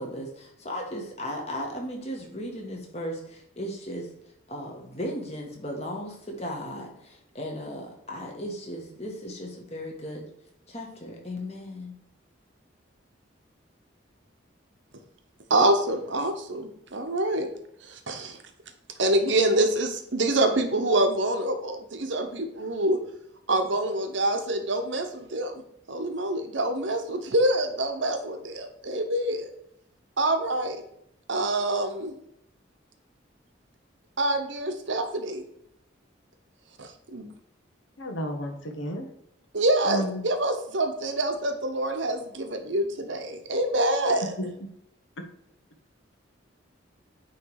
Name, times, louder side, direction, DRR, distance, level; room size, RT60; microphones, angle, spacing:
voice 1, 0.0-4.1 4.5-10.2 10.7-11.9, equal, 35° left, 0 dB, 1.4 m, -36 dB
voice 2, 15.5-17.5 17.9-18.4 19.0-23.0 23.5-29.5 30.2-30.8 31.3-32.2 34.2-35.4 36.8-37.3 39.5-44.3, right 1 dB, 70° right, 7 dB, 1.0 m, -26 dB
voice 3, 38.0-39.1 39.8-40.2 44.4-44.5 45.2-45.3, equal, 80° left, 4 dB, 1.1 m, -32 dB
9.3 x 3.3 x 4.8 m, 0.75 s
head